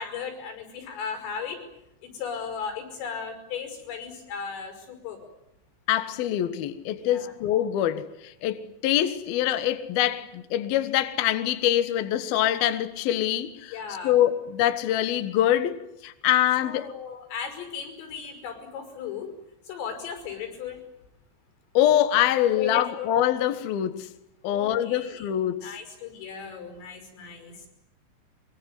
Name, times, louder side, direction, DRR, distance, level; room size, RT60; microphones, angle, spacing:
voice 1, 0.0-1.6 2.0-5.3 7.0-7.3 13.7-14.1 16.6-19.3 19.7-20.8 22.6-23.1 24.4-25.2 25.6-27.7, left 6 dB, 85° left, 8.3 m, -36 dB
voice 2, 5.9-13.8 14.0-16.9 21.7-24.1 24.4-25.7, left 12 dB, 65° left, 2.6 m, -24 dB
24.5 x 24.0 x 9.6 m
omnidirectional pair, 5.7 m